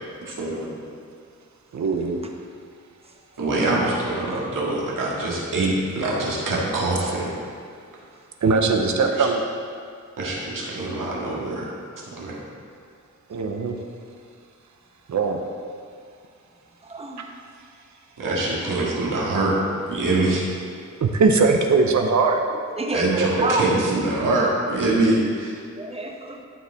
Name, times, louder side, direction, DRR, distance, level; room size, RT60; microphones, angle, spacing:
voice 1, 0.3-0.7 3.4-7.3 8.9-9.3 10.2-11.7 12.2-12.4 18.2-19.5 19.9-20.5 22.9-25.5, right 2 dB, 85° right, -5 dB, 1.9 m, -24 dB
voice 2, 1.7-2.2 8.4-9.4 13.3-13.8 15.1-15.5 21.0-22.4 23.4-23.7, right 4 dB, 65° right, 3 dB, 0.7 m, -20 dB
voice 3, 16.8-17.2 22.8-23.7 25.8-26.4, right 2 dB, 20° right, 1 dB, 1.0 m, -28 dB
13.0 x 4.7 x 3.5 m, 2.2 s
wide cardioid pair, 85°, 31 cm